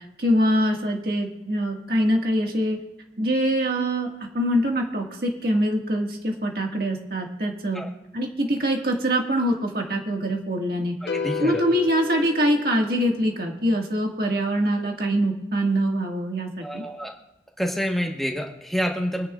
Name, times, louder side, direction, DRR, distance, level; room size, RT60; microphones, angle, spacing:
voice 1, 0.2-2.8 3.2-4.1 4.3-7.8 8.1-10.9 11.4-16.8, equal, 55° right, 1 dB, 1.8 m, -24 dB
voice 2, 11.0-11.6 16.6-17.1 17.6-19.3, equal, ahead, 0 dB, 1.3 m, -28 dB
sound 1, 11.1-13.4, left 5 dB, 75° left, 1.0 m, -32 dB
23.5 x 10.5 x 2.4 m, 0.95 s
head